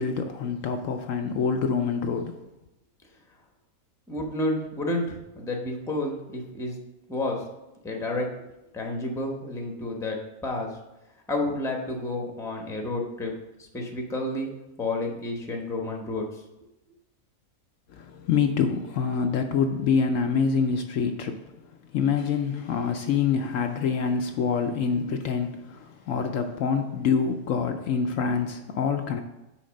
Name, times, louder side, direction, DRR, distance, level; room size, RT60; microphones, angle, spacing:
voice 1, 0.0-2.4 17.9-29.2, left 6 dB, 70° left, 5 dB, 0.9 m, -26 dB
voice 2, 4.1-6.7 7.1-7.4 7.8-8.3 8.7-10.7 11.3-13.3 13.7-16.4, left 2 dB, 5° left, 1 dB, 0.7 m, -30 dB
5.8 x 4.6 x 6.3 m, 0.96 s
omnidirectional pair, 1.5 m